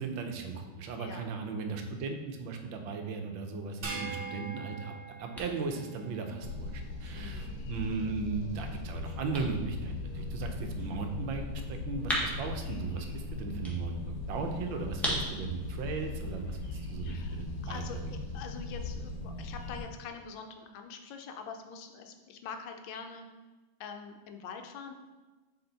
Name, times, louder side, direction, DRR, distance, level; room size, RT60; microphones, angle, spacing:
voice 1, 0.0-4.9 5.2-11.4 11.7-18.2, right 4 dB, 85° right, 4 dB, 1.5 m, -37 dB
voice 2, 1.0-1.6 3.9-4.3 7.1-7.6 17.0-23.3 23.8-24.9, left 6 dB, 80° left, 5 dB, 1.4 m, -45 dB
sound 1, 3.8-6.4, right 4 dB, 50° right, 0.6 m, -42 dB
sound 2, 4.5-18.0, equal, ahead, 0.9 m, -42 dB
sound 3, 6.4-19.8, left 3 dB, 55° left, 1.3 m, -39 dB
7.0 x 3.6 x 4.0 m, 1.2 s
omnidirectional pair, 2.1 m